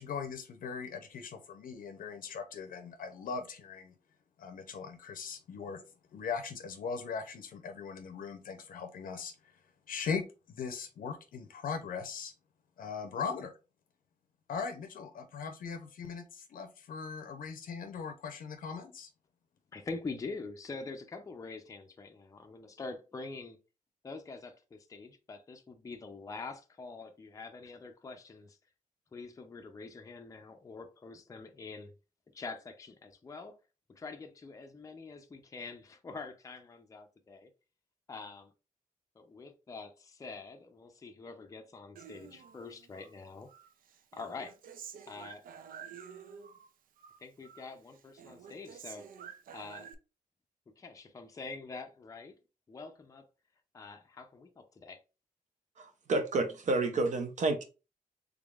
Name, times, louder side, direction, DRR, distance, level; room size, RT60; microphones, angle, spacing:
voice 1, 0.0-3.9 4.4-5.8 6.1-9.5 9.9-12.3 12.8-13.5 14.5-19.1, left 5 dB, 85° left, 0.6 m, -39 dB
voice 2, 19.7-23.6 24.0-28.6 29.1-31.9 32.3-33.6 33.9-37.5 38.1-38.5 39.2-43.5 44.1-44.5 45.1-45.4 47.2-49.1 49.5-49.9 50.8-52.3 52.7-53.3 53.7-55.0, left 4 dB, 25° left, 0.4 m, -45 dB
Human voice, 42.0-43.1 43.5-46.7 47.0-47.7 48.0-49.9, right 7 dB, 90° right, 0.4 m, -50 dB
voice 3, 55.8-57.6, right 3 dB, 60° right, 0.7 m, -30 dB
3.5 x 3.4 x 2.4 m
wide cardioid pair, 135°, 14 cm